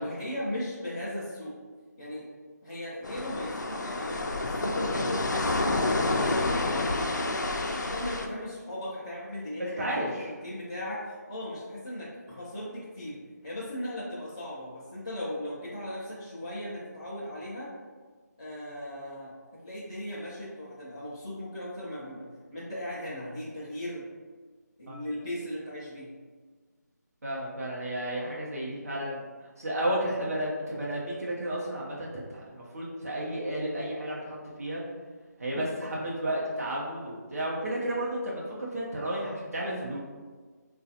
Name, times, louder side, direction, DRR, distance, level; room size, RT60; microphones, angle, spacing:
voice 1, 0.0-1.5 2.0-2.3 2.6-6.7 7.1-13.2 13.4-17.7 18.4-22.3 22.5-24.1 24.8-26.1, left 1 dB, 15° left, -11 dB, 0.3 m, -37 dB
sound 1, 3.0-8.3, left 2 dB, 80° left, 0.4 m, -29 dB
voice 2, 9.6-10.3 24.9-25.0 27.2-29.2 29.6-34.8 35.4-40.0, right 1 dB, 55° right, -5 dB, 0.8 m, -32 dB
3.8 x 2.3 x 2.7 m, 1.5 s
figure-of-eight pair, 175°, 10 cm